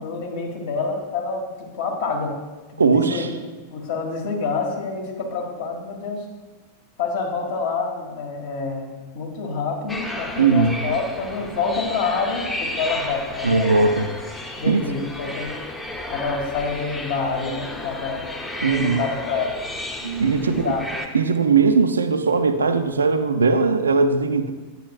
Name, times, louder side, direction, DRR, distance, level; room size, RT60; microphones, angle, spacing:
voice 1, 0.0-1.5 1.7-2.4 2.7-3.2 3.7-6.2 7.0-13.8 14.6-15.6 16.1-18.2 18.6-19.6 20.4-20.8, left 4 dB, 55° left, 0 dB, 1.6 m, -27 dB
voice 2, 2.8-3.3 10.4-10.8 13.4-14.1 14.6-14.8 18.6-19.0 20.0-20.7 21.1-24.5, right 4 dB, 75° right, 9 dB, 0.4 m, -19 dB
sound 1, 9.9-21.1, left 1 dB, 10° left, 0.8 m, -33 dB
9.0 x 8.6 x 2.4 m, 1.2 s
figure-of-eight pair, 90°, 0 cm